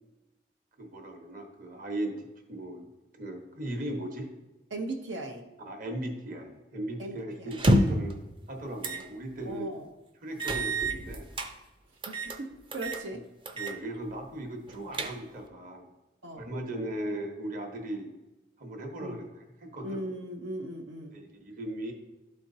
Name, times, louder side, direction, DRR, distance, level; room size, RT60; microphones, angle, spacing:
voice 1, 0.8-2.9 3.1-4.3 5.6-8.2 8.5-9.7 10.2-11.3 13.5-15.8 16.3-18.1 18.6-19.2 19.6-20.0 21.1-21.9, right 1 dB, 45° right, 2 dB, 1.1 m, -37 dB
voice 2, 4.7-5.4 7.0-8.0 9.4-9.9 12.1-13.2 16.2-16.5 19.0-19.2 19.8-21.1, right 1 dB, 80° right, 1 dB, 0.8 m, -38 dB
sound 1, 7.5-8.1 8.8-9.0 9.4-9.5 10.4-11.5 12.0-12.4 12.7-13.0 13.5-13.8 14.1-14.2 14.7-15.5, right 1 dB, 25° right, 0.5 m, -28 dB
12.0 x 4.4 x 2.7 m, 1.1 s
head